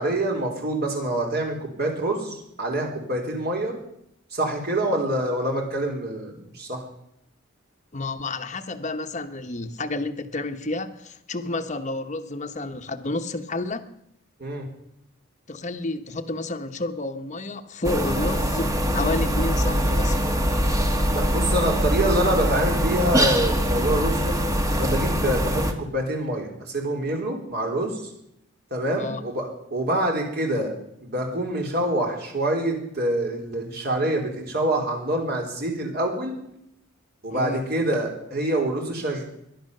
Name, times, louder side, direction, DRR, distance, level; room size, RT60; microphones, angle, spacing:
voice 1, 0.0-3.8 4.3-6.8 14.4-14.7 21.1-24.3 24.8-28.0 28.7-30.7 31.0-36.4 37.2-39.2, right 1 dB, 50° right, 1 dB, 4.1 m, -26 dB
voice 2, 7.9-13.9 15.5-20.2 29.0-29.2 37.3-37.6, left 2 dB, 35° left, 7 dB, 1.1 m, -30 dB
sound 1, 17.8-25.7, equal, 15° right, 1.3 m, -23 dB
18.5 x 11.5 x 6.7 m, 0.78 s
head